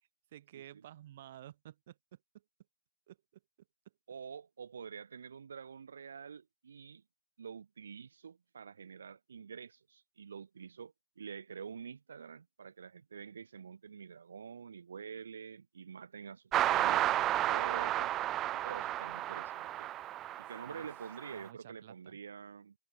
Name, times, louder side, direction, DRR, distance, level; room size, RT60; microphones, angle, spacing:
voice 1, 0.3-2.2 3.1-3.2 20.7-20.8 21.3-22.2, right 12 dB, 55° right, 5.7 m, -52 dB
voice 2, 4.1-7.0 7.4-18.1 18.5-19.9 20.4-22.8, right 6 dB, 85° right, 4.1 m, -47 dB
sound 1, 16.5-21.3, right 13 dB, 20° right, 0.3 m, -32 dB
open air
hypercardioid pair, 145°, 0 cm